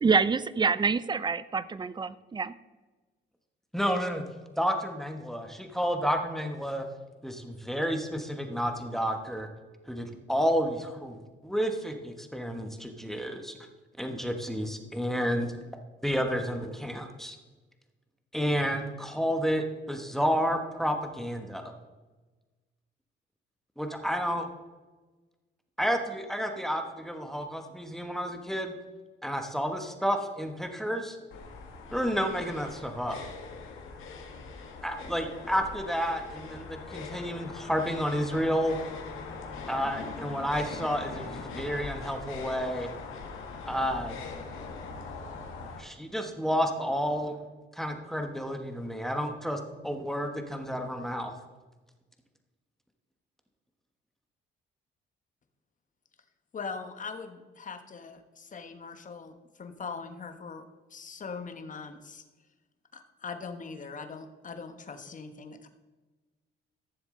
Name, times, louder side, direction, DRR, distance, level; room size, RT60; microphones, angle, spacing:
voice 1, 0.0-2.1 2.4-2.5, right 5 dB, 20° right, 16 dB, 0.5 m, -26 dB
voice 2, 3.7-4.2 4.6-6.8 7.2-9.5 9.9-13.5 14.0-15.5 16.0-17.4 18.3-21.7 23.8-24.5 25.8-28.7 29.2-31.2 31.9-33.2 34.8-38.8 39.7-42.9 43.7-44.2 45.8-47.3 47.8-51.3, equal, ahead, 5 dB, 1.2 m, -30 dB
sound 1, 31.3-45.8, left 4 dB, 85° left, 1.7 m, -41 dB
voice 3, 56.5-60.6 60.9-62.2 62.9-65.7, left 5 dB, 40° left, 7 dB, 1.2 m, -41 dB
14.5 x 7.0 x 3.8 m, 1.3 s
cardioid pair, 90°, 20 cm